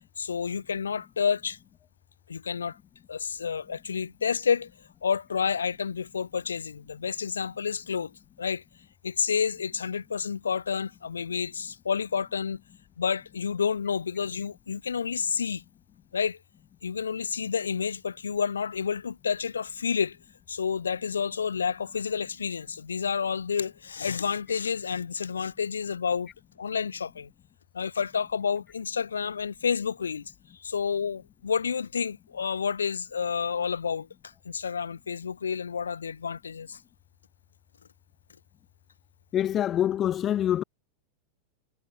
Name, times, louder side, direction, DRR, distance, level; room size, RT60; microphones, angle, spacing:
voice 1, 0.2-1.6 2.3-2.8 3.1-4.7 5.0-8.1 8.4-8.6 9.0-12.6 13.0-15.6 16.1-16.4 16.8-20.2 20.5-26.3 26.6-27.3 27.7-30.3 30.6-34.1 34.4-36.8, left 6 dB, 70° left, 1.1 m, -29 dB
voice 2, 39.3-40.6, left 11 dB, 30° left, 0.3 m, -25 dB
figure-of-eight pair, 90°, 0 cm